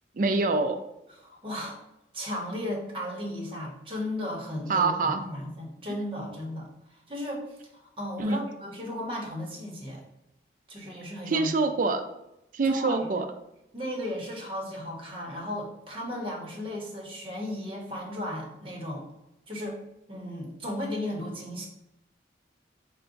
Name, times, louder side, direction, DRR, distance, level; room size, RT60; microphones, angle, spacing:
voice 1, 0.2-0.8 4.7-5.2 8.2-8.4 11.3-12.0 12.5-13.2, right 3 dB, 45° right, 7 dB, 0.4 m, -25 dB
voice 2, 1.1-1.8 2.1-7.5 7.7-10.0 10.7-11.5 12.6-13.1 13.7-19.0 19.5-19.8 20.1-21.7, left 1 dB, 30° right, -2 dB, 0.9 m, -35 dB
4.6 x 2.2 x 3.8 m, 0.85 s
head